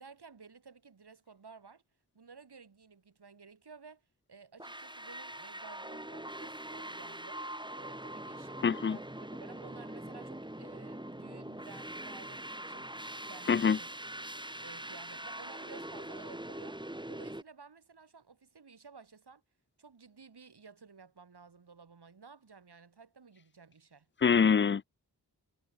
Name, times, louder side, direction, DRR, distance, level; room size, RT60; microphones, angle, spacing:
voice 1, 0.0-1.8 2.1-4.0 4.3-7.4 7.8-13.0 13.3-13.9 14.6-19.4 19.8-24.1, right 5 dB, 85° right, 3.8 m, -54 dB
sound 1, 4.6-17.4, right 1 dB, 10° right, 2.9 m, -43 dB
voice 2, 8.6-9.0 13.5-13.8 24.2-24.8, left 6 dB, 30° left, 0.4 m, -25 dB
wide cardioid pair, 75°, 39 cm